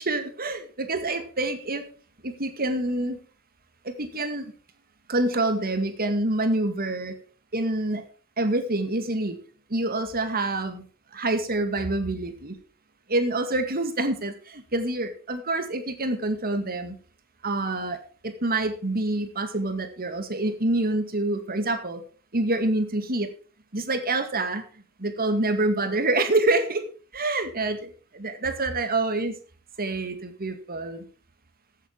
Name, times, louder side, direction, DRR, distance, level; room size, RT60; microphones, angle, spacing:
voice 1, 0.1-1.8 2.2-3.2 3.9-4.5 5.1-7.1 7.5-8.0 8.4-9.4 9.7-10.8 11.1-12.6 13.1-16.9 17.4-18.0 18.2-22.0 22.3-23.3 23.7-24.6 25.0-26.8 27.1-27.9 28.1-29.3 29.8-31.0, right 2 dB, 45° right, 8 dB, 2.1 m, -26 dB
14.5 x 8.6 x 4.6 m, 0.39 s
head